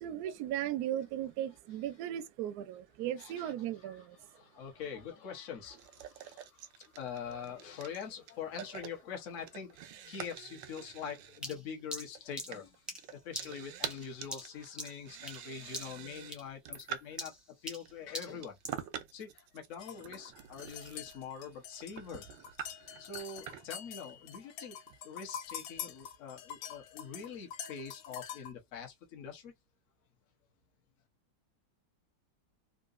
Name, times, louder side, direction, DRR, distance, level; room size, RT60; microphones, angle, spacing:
voice 1, 0.0-4.2, right 11 dB, 70° right, 0.9 m, -37 dB
voice 2, 3.2-3.5 3.8-18.6 19.1-22.3 23.0-29.5, left 7 dB, 50° left, 1.2 m, -44 dB
sound 1, 5.7-17.4 17.9-25.0, right 9 dB, 90° right, 1.3 m, -46 dB
sound 2, 11.4-15.5 15.7-16.1 16.3-18.9, equal, ahead, 0.7 m, -43 dB
sound 3, 19.8-28.5, left 9 dB, 75° left, 1.3 m, -46 dB
3.8 x 2.6 x 2.4 m
omnidirectional pair, 2.0 m